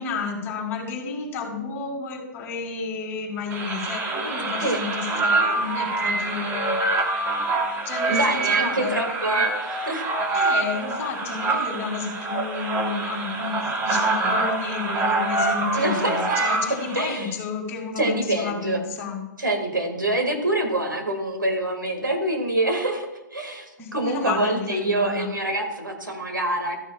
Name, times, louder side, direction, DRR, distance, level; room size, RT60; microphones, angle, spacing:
voice 1, 0.0-6.8 7.8-8.9 10.3-19.2 23.8-25.3, left 5 dB, 20° left, -3 dB, 3.1 m, -31 dB
sound 1, 3.5-17.0, right 3 dB, 20° right, 1.4 m, -25 dB
voice 2, 8.1-10.0 15.7-16.4 16.9-17.3 18.0-18.8 19.4-23.7 23.9-26.8, right 1 dB, 90° right, 3 dB, 2.3 m, -25 dB
14.0 x 10.0 x 2.5 m, 0.92 s
figure-of-eight pair, 125°, 10 cm